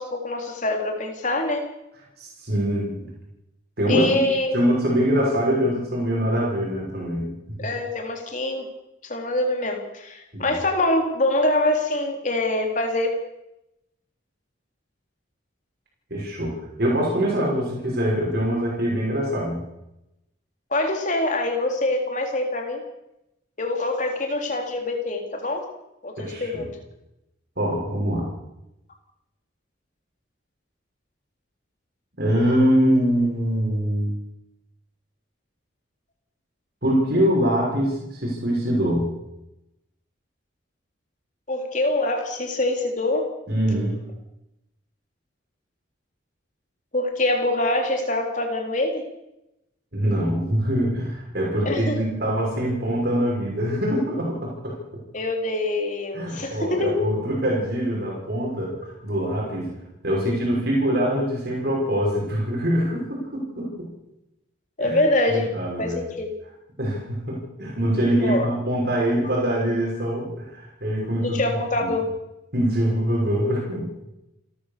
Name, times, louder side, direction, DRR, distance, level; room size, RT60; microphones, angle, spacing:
voice 1, 0.0-1.7 3.9-4.5 7.6-8.7 9.0-13.1 20.7-22.8 23.6-25.7 26.0-26.7 41.5-43.3 46.9-49.0 51.7-52.0 55.1-57.0 64.8-65.5 65.8-66.3 68.2-68.4 71.2-72.1, left 2 dB, 40° left, 3 dB, 3.7 m, -24 dB
voice 2, 2.2-3.1 3.8-7.3 7.6-7.7 10.3-10.6 16.1-19.6 26.2-26.7 27.6-28.3 32.2-34.1 36.8-39.1 43.5-44.0 49.9-55.0 56.1-58.8 59.0-59.7 60.0-63.9 64.8-65.0 65.3-66.0 66.8-72.0 72.5-73.9, equal, 55° right, -3 dB, 6.3 m, -24 dB
28.5 x 13.5 x 6.9 m, 0.90 s
head